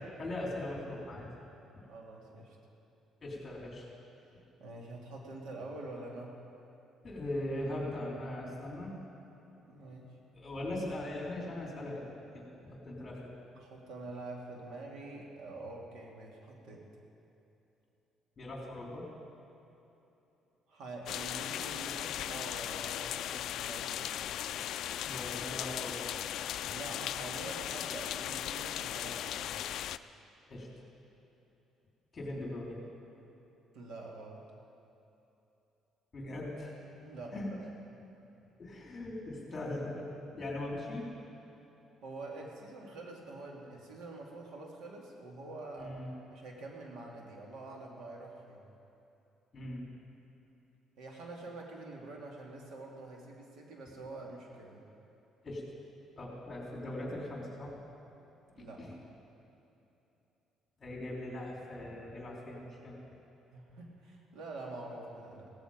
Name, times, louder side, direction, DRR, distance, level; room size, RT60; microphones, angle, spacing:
voice 1, 0.2-1.3 3.2-3.9 7.0-8.9 10.3-12.1 12.3-13.3 18.4-19.1 25.1-26.1 30.5-30.7 32.1-32.8 36.1-36.8 37.3-37.5 38.6-41.1 45.8-46.1 49.5-49.8 55.4-55.6 56.2-57.8 58.6-58.9 60.8-62.9, left 1 dB, 25° left, -3 dB, 3.9 m, -40 dB
voice 2, 1.9-2.6 4.6-6.4 9.7-10.2 13.6-16.9 20.7-24.1 26.7-29.6 33.7-34.5 37.0-37.7 42.0-46.0 46.3-48.6 51.0-54.8 58.5-59.0 63.5-65.5, right 2 dB, 75° right, -1 dB, 2.5 m, -46 dB
sound 1, 21.1-30.0, left 11 dB, 65° left, 0.3 m, -37 dB
17.5 x 14.0 x 5.2 m, 3.0 s
cardioid pair, 140°, 0 cm